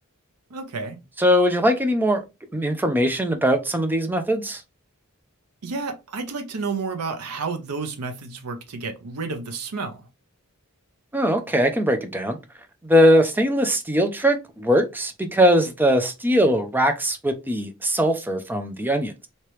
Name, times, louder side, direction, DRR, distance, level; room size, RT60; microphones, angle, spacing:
voice 1, 0.5-1.0 5.6-10.1, right 4 dB, 85° right, 0.6 m, -31 dB
voice 2, 1.2-2.2 2.5-4.6 11.1-12.4 12.8-19.3, equal, 10° right, 0.4 m, -21 dB
3.1 x 2.8 x 3.1 m
head